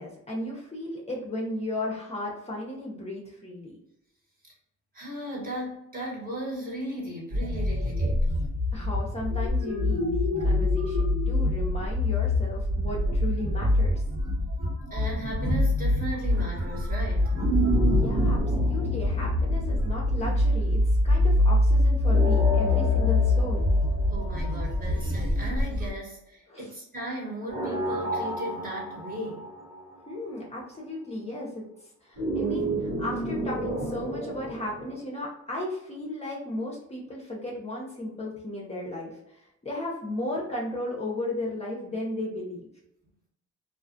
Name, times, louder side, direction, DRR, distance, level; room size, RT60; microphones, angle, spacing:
voice 1, 0.0-3.8 8.7-14.0 17.9-23.7 26.5-26.7 30.1-31.7 32.0-42.7, left 1 dB, 20° left, -3 dB, 0.6 m, -35 dB
voice 2, 4.9-8.3 14.9-17.4 24.1-29.5, right 1 dB, 30° right, -3 dB, 1.1 m, -36 dB
sound 1, 7.3-25.9, left 2 dB, 50° right, 1.5 m, -25 dB
sound 2, 17.3-20.6 22.0-24.9 27.5-30.1 32.2-35.0, right 2 dB, 80° right, 1.0 m, -31 dB
2.4 x 2.3 x 2.5 m, 0.82 s
cardioid pair, 90°, 30 cm